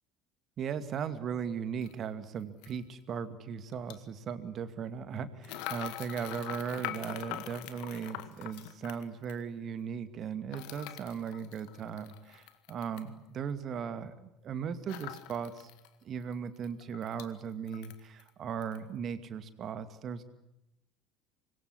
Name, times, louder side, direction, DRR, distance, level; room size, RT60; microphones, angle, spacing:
voice 1, 0.6-15.7 16.0-20.2, right 7 dB, 40° right, 11 dB, 2.3 m, -38 dB
sound 1, 1.8-1.9 2.6-2.8 3.7-4.0 5.4-9.4 10.5-13.1 14.9-15.9 16.2-16.3 16.6-17.3 17.7-18.3 18.6-18.8, left 14 dB, 60° left, 1.9 m, -43 dB
26.0 x 21.5 x 9.9 m, 0.88 s
figure-of-eight pair, 60°, 0 cm